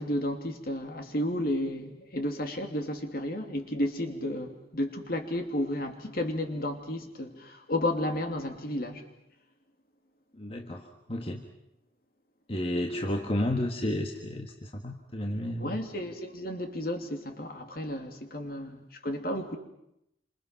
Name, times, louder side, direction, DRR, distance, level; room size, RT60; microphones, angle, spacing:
voice 1, 0.0-9.0 15.6-19.6, left 1 dB, 55° left, 2.9 m, -32 dB
voice 2, 10.3-11.4 12.5-15.8, left 1 dB, 30° left, 1.6 m, -32 dB
28.0 x 26.5 x 5.9 m
head